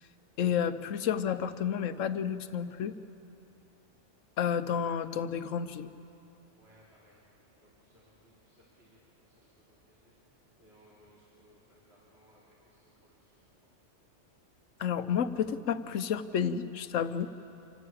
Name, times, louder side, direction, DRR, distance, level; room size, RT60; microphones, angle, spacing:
voice 1, 0.4-2.9 4.4-5.9 14.8-17.3, left 8 dB, 85° left, 12 dB, 1.1 m, -31 dB
voice 2, 6.6-7.2 7.6-13.7, equal, 55° right, -7 dB, 3.2 m, -64 dB
26.5 x 14.5 x 8.6 m, 2.8 s
omnidirectional pair, 1.3 m